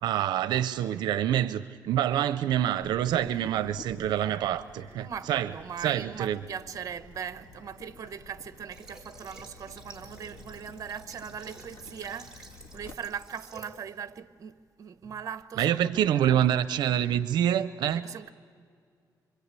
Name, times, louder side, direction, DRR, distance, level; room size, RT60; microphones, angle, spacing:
voice 1, 0.0-5.5 5.8-6.4 15.6-18.0, right 11 dB, 85° right, 0.6 m, -26 dB
Water tap faucet / Drip, 2.8-12.9, left 4 dB, 90° left, 1.7 m, -50 dB
voice 2, 5.0-16.4 17.9-18.3, right 7 dB, 50° right, 0.9 m, -40 dB
Water / Water tap faucet, 8.7-13.8, right 3 dB, 10° right, 4.0 m, -51 dB
26.5 x 24.5 x 8.2 m
cardioid pair, 115°, 7 cm